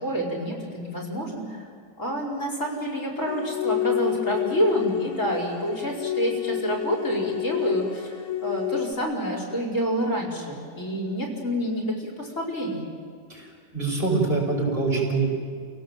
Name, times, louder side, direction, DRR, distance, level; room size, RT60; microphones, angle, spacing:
voice 1, 0.0-1.7 2.0-8.2 8.4-12.9, equal, 50° left, 0 dB, 5.1 m, -28 dB
sound 1, 3.2-8.9, left 13 dB, 70° left, 1.5 m, -29 dB
voice 2, 13.3-15.3, right 3 dB, 30° right, -2 dB, 5.9 m, -25 dB
28.5 x 18.0 x 7.8 m, 2.2 s
omnidirectional pair, 1.7 m